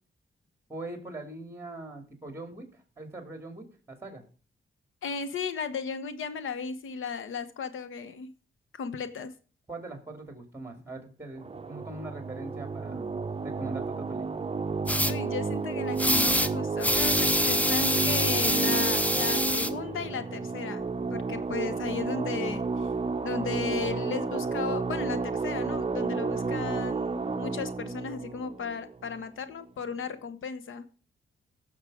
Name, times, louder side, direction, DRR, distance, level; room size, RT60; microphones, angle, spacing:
voice 1, 0.7-4.2 9.7-13.1 13.4-14.5, right 2 dB, 10° right, 5 dB, 2.8 m, -42 dB
voice 2, 5.0-8.3 8.7-9.3 15.0-22.9 23.2-30.9, left 5 dB, 85° left, 11 dB, 1.2 m, -35 dB
sound 1, 11.4-29.5, right 4 dB, 30° right, 0.7 m, -31 dB
sound 2, 14.9-15.1 16.0-16.5 16.8-19.7, left 1 dB, 5° left, 0.7 m, -26 dB
16.0 x 6.6 x 5.0 m, 0.38 s
cardioid pair, 90°, 20 cm